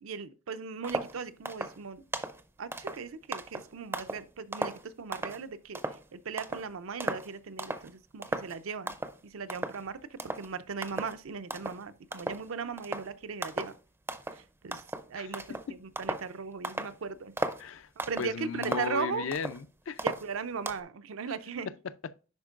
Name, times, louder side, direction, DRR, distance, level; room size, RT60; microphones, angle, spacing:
voice 1, 0.0-2.0 2.6-5.8 6.1-9.0 9.2-13.7 14.3-14.8 15.1-17.3 18.1-19.3 20.0-21.7, right 5 dB, 80° right, 0.5 m, -38 dB
sound 1, 0.8-1.2 1.4-1.8 2.1-2.4 2.7-4.3 4.5-5.4 5.7-6.0 6.4-6.7 7.0-7.3 7.6-7.9 8.2-8.6 8.9-9.2 9.5-9.9 10.2-10.5 10.8-11.2 11.5-11.8 12.1-12.5 12.8-13.1 13.4-13.8 14.1-14.4 14.7-16.3 16.6-16.9 17.4-17.6 18.0-18.3 18.6-19.6 20.0-20.8, right 2 dB, 10° right, 0.4 m, -36 dB
voice 2, 18.2-20.0, left 6 dB, 65° left, 0.4 m, -35 dB
10.5 x 4.4 x 2.4 m
head